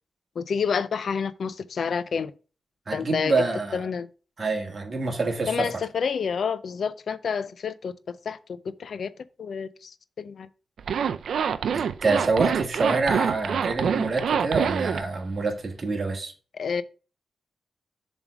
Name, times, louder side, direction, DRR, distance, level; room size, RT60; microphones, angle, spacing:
voice 1, 0.4-2.3 2.9-3.4 3.7-4.1 5.5-9.1 9.4-10.5 16.5-16.8, left 6 dB, 65° left, 0.5 m, -29 dB
voice 2, 2.9-3.8 4.4-5.7 11.7-16.3, right 3 dB, 40° right, 1.7 m, -26 dB
Zipper (clothing), 10.8-15.0, right 7 dB, 85° right, 0.5 m, -26 dB
7.1 x 3.5 x 6.0 m
wide cardioid pair, 125°, 0 cm